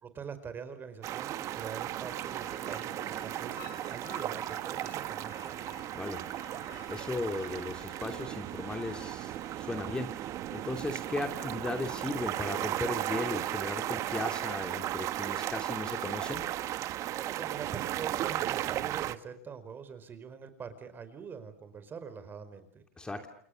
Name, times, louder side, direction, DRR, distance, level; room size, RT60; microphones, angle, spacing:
voice 1, 0.0-5.7 17.1-22.8, right 6 dB, 25° right, 11 dB, 4.8 m, -44 dB
sound 1, 1.0-19.2, right 13 dB, 45° right, 1.3 m, -35 dB
sound 2, 1.8-11.2, left 7 dB, 50° left, 7.1 m, -53 dB
voice 2, 6.9-16.5 23.0-23.3, left 2 dB, 10° left, 5 dB, 2.9 m, -36 dB
29.0 x 28.5 x 6.5 m, 0.62 s
supercardioid pair, 115°, 8 cm